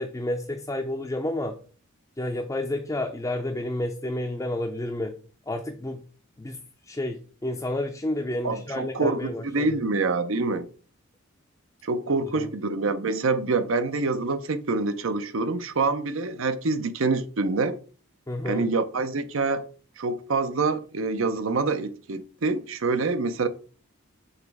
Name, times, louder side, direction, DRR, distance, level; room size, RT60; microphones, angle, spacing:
voice 1, 0.0-1.6 2.2-5.2 5.5-6.0 6.4-6.6 6.9-9.8 12.3-12.5 18.3-18.7, left 1 dB, 15° left, 0.4 m, -30 dB
voice 2, 8.4-10.7 11.8-17.8 18.5-19.6 20.0-23.5, right 3 dB, 70° right, 0.6 m, -26 dB
6.5 x 3.0 x 4.7 m
head